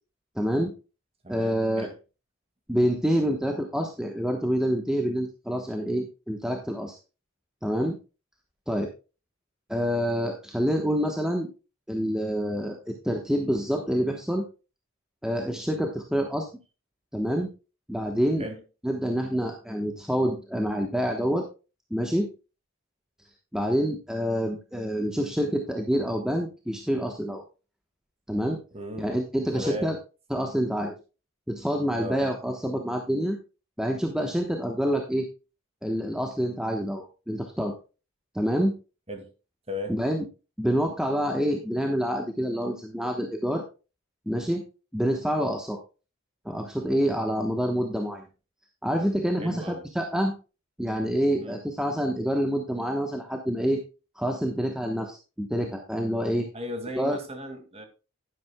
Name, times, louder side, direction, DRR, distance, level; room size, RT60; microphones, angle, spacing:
voice 1, 0.4-0.7 1.3-1.9 2.7-6.9 7.6-8.0 8.7-8.9 9.7-11.5 11.9-14.4 15.2-16.5 17.1-17.5 17.9-18.5 18.8-21.4 21.9-22.3 23.5-27.4 28.3-28.6 29.0-29.9 30.3-30.9 31.5-33.4 33.8-35.3 35.8-37.7 38.3-38.7 39.9-40.3 40.6-43.6 44.3-44.6 44.9-45.8 46.4-48.2 48.8-50.3 50.8-53.8 54.2-56.5 57.0-57.2, equal, 5° right, 3 dB, 1.1 m, -27 dB
voice 2, 1.2-2.0 18.4-18.6 28.7-29.2 29.5-30.0 32.0-32.2 39.1-39.3 39.7-40.0 49.4-49.9 51.4-51.6 56.5-57.8, left 1 dB, 30° right, 6 dB, 2.1 m, -36 dB
11.0 x 10.5 x 2.2 m, 0.31 s
head